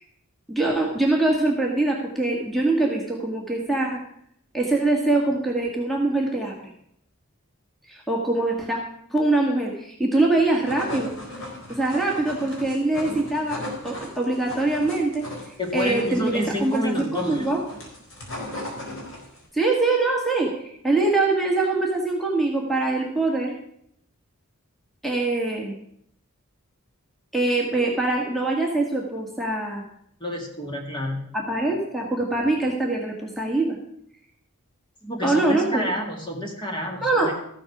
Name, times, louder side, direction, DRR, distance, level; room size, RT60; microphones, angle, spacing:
voice 1, 0.5-4.0 4.5-6.5 7.9-8.8 9.1-11.1 11.7-13.6 13.8-17.6 19.5-23.5 25.0-25.7 27.3-29.8 31.3-33.8 35.2-35.9 37.0-37.3, right 2 dB, ahead, -1 dB, 1.6 m, -23 dB
sound 1, 10.4-19.5, left 1 dB, 60° left, 4.2 m, -37 dB
voice 2, 15.6-17.5 30.2-31.2 35.0-37.3, left 1 dB, 20° left, 1 dB, 2.0 m, -29 dB
14.0 x 7.8 x 6.0 m, 0.71 s
head